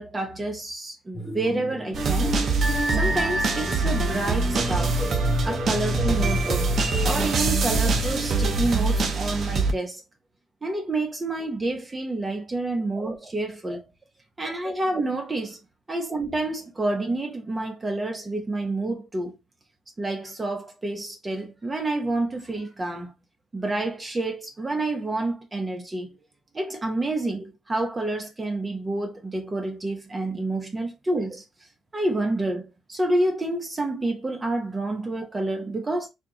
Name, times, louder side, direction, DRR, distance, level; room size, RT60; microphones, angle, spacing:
voice 1, 0.0-2.4 2.9-5.0 5.4-6.7 7.0-10.0 10.6-13.8 14.4-15.6 15.9-19.4 20.0-23.1 23.5-26.1 26.5-31.4 31.9-36.1, right 2 dB, 25° right, 0.9 m, -28 dB
sound 1, 1.1-8.7, right 1 dB, 5° left, 1.0 m, -31 dB
sound 2, 1.9-9.7, right 3 dB, 55° right, 0.8 m, -24 dB
4.4 x 2.4 x 2.9 m
cardioid pair, 90°, 0 cm